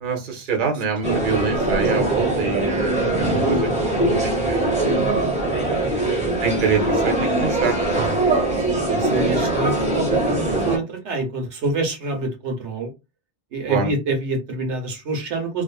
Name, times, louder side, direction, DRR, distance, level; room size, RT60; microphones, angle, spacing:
voice 1, 0.0-3.9 4.2-4.9 6.4-7.9 10.5-10.6 13.7-13.9, right 5 dB, 50° right, 3 dB, 0.8 m, -26 dB
sound 1, 1.0-10.8, right 2 dB, 5° right, 1.0 m, -21 dB
voice 2, 1.8-2.4 3.3-3.6 5.7-6.1 7.9-8.6 8.9-12.9 13.5-15.6, right 2 dB, 85° right, 4 dB, 1.1 m, -27 dB
2.5 x 2.4 x 2.3 m, 0.25 s
omnidirectional pair, 1.2 m